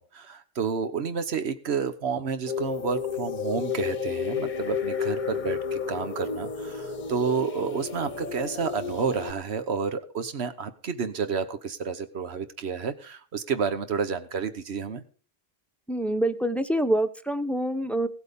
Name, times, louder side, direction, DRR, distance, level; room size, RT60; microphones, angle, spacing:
voice 1, 0.0-15.0, right 6 dB, 85° right, 10 dB, 1.4 m, -30 dB
sound 1, 2.5-9.3, left 6 dB, 50° left, 0.9 m, -31 dB
voice 2, 15.9-18.1, right 1 dB, ahead, 10 dB, 0.9 m, -26 dB
17.5 x 8.2 x 5.3 m, 0.40 s
omnidirectional pair, 1.1 m